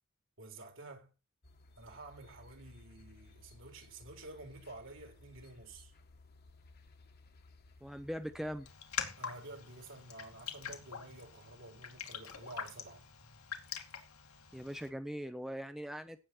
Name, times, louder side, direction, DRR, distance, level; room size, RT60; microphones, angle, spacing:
voice 1, 0.4-1.1 1.8-5.9 9.2-13.0, right 2 dB, 60° right, 3.8 m, -50 dB
sound 1, 1.4-8.7, left 3 dB, 45° left, 1.6 m, -59 dB
voice 2, 7.8-8.7 14.5-16.2, equal, ahead, 0.7 m, -41 dB
Raindrop, 8.7-14.9, left 7 dB, 85° left, 2.5 m, -44 dB
17.0 x 7.6 x 4.5 m
head